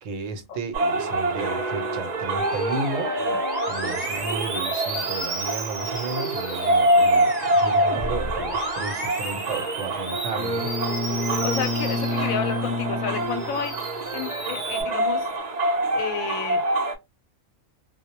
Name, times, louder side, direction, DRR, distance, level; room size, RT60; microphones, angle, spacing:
voice 1, 0.0-3.2 3.7-10.7, right 3 dB, 75° right, 0.9 m, -33 dB
sound 1, 0.7-16.9, right 1 dB, 55° right, 0.5 m, -26 dB
Musical instrument, 2.4-12.8 13.3-14.8, right 1 dB, 20° right, 0.8 m, -33 dB
Bowed string instrument, 10.3-14.2, left 2 dB, 50° left, 0.5 m, -29 dB
voice 2, 11.4-13.7 14.1-15.3 15.9-16.6, left 8 dB, 90° left, 1.0 m, -31 dB
2.2 x 2.0 x 2.7 m
omnidirectional pair, 1.4 m